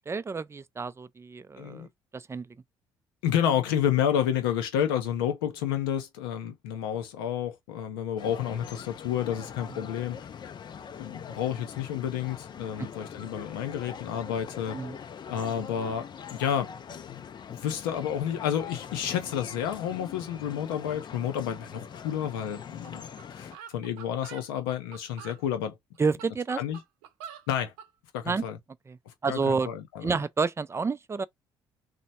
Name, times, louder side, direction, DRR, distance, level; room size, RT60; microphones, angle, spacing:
voice 1, 0.1-1.9 2.1-2.5 9.7-9.9 14.7-15.0 26.0-26.6 28.3-28.4 28.9-29.0 29.2-29.7 30.0-31.2, right 4 dB, 20° right, 0.4 m, -29 dB
voice 2, 1.6-1.9 3.2-10.2 11.0-14.8 15.3-16.1 16.3-23.1 23.4-25.7 26.6-26.8 27.5-27.7 28.1-28.6 29.3-30.1, left 9 dB, 80° left, 0.7 m, -30 dB
sound 1, 8.2-23.6, left 7 dB, 40° left, 0.5 m, -43 dB
sound 2, 22.8-22.9 23.2-23.3 23.5-25.4 26.0-27.9, right 8 dB, 75° right, 0.5 m, -45 dB
3.0 x 2.2 x 4.1 m
hypercardioid pair, 50°, 12 cm